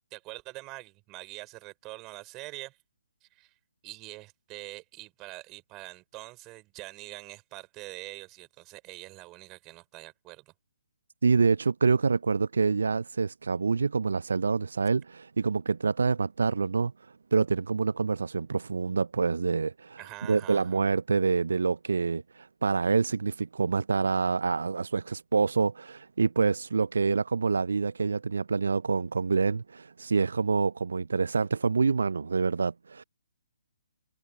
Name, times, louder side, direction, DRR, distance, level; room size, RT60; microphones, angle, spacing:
voice 1, 0.1-2.8 3.2-3.5 3.8-10.5 20.0-20.8, right 21 dB, 25° right, 5.6 m, -44 dB
voice 2, 11.2-16.9 17.3-20.0 20.3-33.0, right 4 dB, 65° right, 0.5 m, -26 dB
figure-of-eight pair, 135°, 0 cm